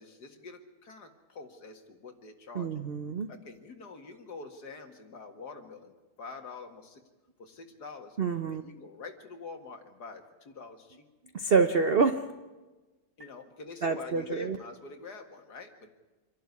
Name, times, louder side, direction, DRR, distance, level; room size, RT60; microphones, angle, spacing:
voice 1, 0.0-2.8 3.3-5.9 6.2-7.0 7.4-8.2 8.5-11.0 13.2-15.9, left 3 dB, 55° left, 5 dB, 2.3 m, -46 dB
voice 2, 2.5-3.3 8.2-8.6 11.3-12.3 13.8-14.6, right 5 dB, 55° right, 9 dB, 0.6 m, -27 dB
26.0 x 11.5 x 9.5 m, 1.2 s
omnidirectional pair, 2.2 m